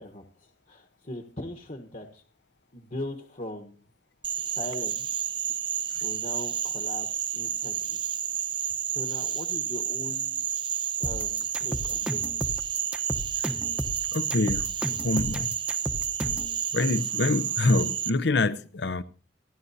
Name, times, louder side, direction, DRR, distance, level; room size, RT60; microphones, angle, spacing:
voice 1, 0.0-2.2 2.7-3.8 4.4-5.1 6.0-7.1 7.3-8.1 8.9-10.4 11.0-12.4, left 1 dB, 45° left, 1.1 m, -40 dB
Frog, 4.2-18.1, right 9 dB, 25° right, 0.6 m, -30 dB
sound 1, 11.0-16.5, equal, 5° right, 0.9 m, -33 dB
voice 2, 14.1-14.7 15.0-15.6 16.7-19.0, left 3 dB, 70° left, 0.7 m, -26 dB
29.0 x 11.0 x 2.7 m
head